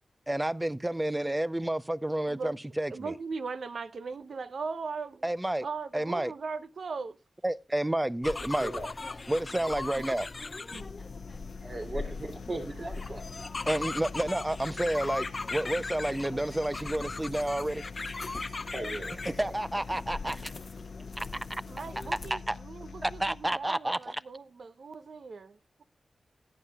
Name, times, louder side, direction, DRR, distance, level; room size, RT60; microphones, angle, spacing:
voice 1, 0.3-3.1 5.2-5.7 5.9-6.3 7.4-8.7 9.3-10.3 13.7-17.8 19.4-20.5 21.2-21.6 22.3-22.6 23.0-24.2, right 1 dB, 15° right, 0.5 m, -30 dB
voice 2, 2.3-2.6 2.9-5.3 5.6-7.2 10.0-10.1 10.7-10.9 21.7-25.8, right 4 dB, 70° right, 0.8 m, -39 dB
sound 1, 8.2-22.3, left 3 dB, 45° left, 0.8 m, -39 dB
sound 2, 10.7-23.7, left 5 dB, 85° left, 1.0 m, -45 dB
voice 3, 11.6-13.2 18.7-19.5, right 2 dB, 45° right, 2.8 m, -38 dB
17.0 x 9.6 x 2.3 m
cardioid pair, 60°, 0 cm